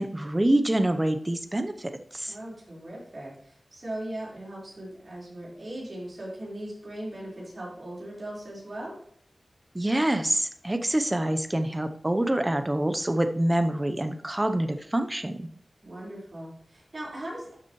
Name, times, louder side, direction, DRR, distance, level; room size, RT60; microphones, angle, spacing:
voice 1, 0.0-2.3 9.7-15.5, right 1 dB, 20° right, 8 dB, 0.8 m, -26 dB
voice 2, 2.3-9.0 15.8-17.5, right 1 dB, 50° right, -6 dB, 4.4 m, -39 dB
12.0 x 7.3 x 3.2 m, 0.67 s
wide cardioid pair, 95°, 0 cm